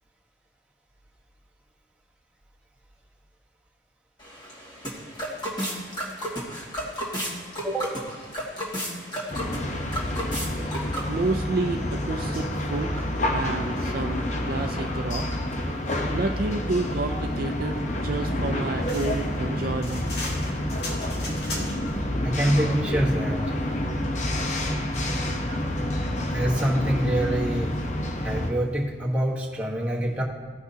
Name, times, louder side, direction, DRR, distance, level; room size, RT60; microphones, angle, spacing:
sound 1, 4.2-11.3, equal, 25° left, 2.0 m, -33 dB
voice 1, 7.6-7.9 22.2-23.4 24.2-24.3 26.3-27.8 28.2-30.2, right 1 dB, 10° right, -4 dB, 1.3 m, -25 dB
sound 2, 9.3-28.5, left 1 dB, 45° left, 0.8 m, -28 dB
voice 2, 11.1-15.4 16.1-20.1, right 3 dB, 55° right, 4 dB, 0.4 m, -30 dB
sound 3, 18.8-22.0, left 2 dB, 70° left, 1.8 m, -37 dB
16.5 x 6.0 x 2.8 m, 1.5 s
head